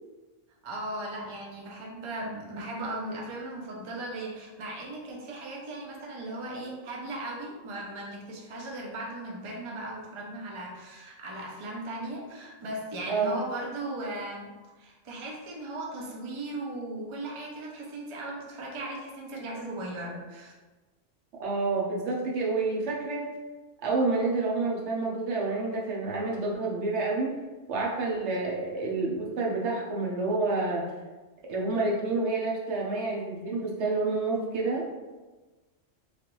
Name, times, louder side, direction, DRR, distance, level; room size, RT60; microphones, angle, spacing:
voice 1, 0.6-14.5 14.8-20.5, right 1 dB, 45° right, -2 dB, 0.4 m, -37 dB
voice 2, 13.1-13.4 21.4-23.3 23.8-27.3 27.7-30.8 31.5-34.9, right 3 dB, 70° right, -3 dB, 1.0 m, -28 dB
3.3 x 2.4 x 3.0 m, 1.2 s
omnidirectional pair, 1.2 m